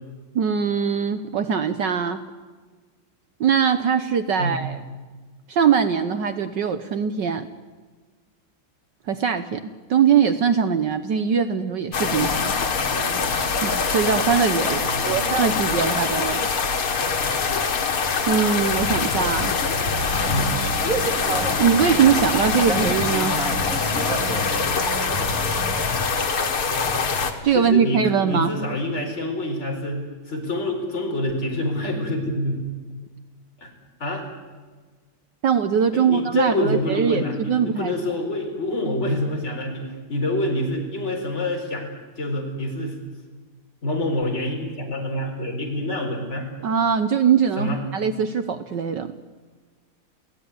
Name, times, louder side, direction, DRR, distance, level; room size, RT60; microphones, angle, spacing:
voice 1, 0.3-2.2 3.4-4.8 5.5-7.5 9.1-12.5 13.6-16.5 18.3-19.5 21.6-23.4 27.4-28.5 35.4-37.9 46.6-49.1, right 7 dB, 60° right, 10 dB, 1.5 m, -21 dB
sound 1, 11.9-27.3, left 5 dB, 85° left, 3.0 m, -24 dB
voice 2, 14.8-15.5 20.3-20.6 27.5-32.6 33.6-33.7 34.0-34.3 35.9-41.9 42.1-43.0 43.8-46.5 47.6-47.8, left 1 dB, 30° left, 1 dB, 4.8 m, -27 dB
sound 2, 20.0-25.7, right 3 dB, 40° right, 3.2 m, -31 dB
28.5 x 17.5 x 9.6 m, 1.4 s
omnidirectional pair, 2.4 m